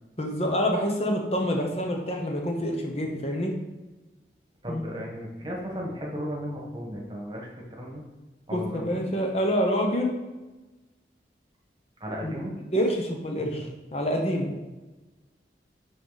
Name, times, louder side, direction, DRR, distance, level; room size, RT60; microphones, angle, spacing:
voice 1, 0.2-3.5 4.7-4.9 8.5-10.1 12.2-12.4 12.7-14.6, equal, 35° left, 1 dB, 0.9 m, -27 dB
voice 2, 4.6-8.0 8.5-8.8 12.0-12.5 13.4-13.7, equal, 25° right, -1 dB, 1.4 m, -35 dB
11.0 x 3.9 x 4.1 m, 1.2 s
head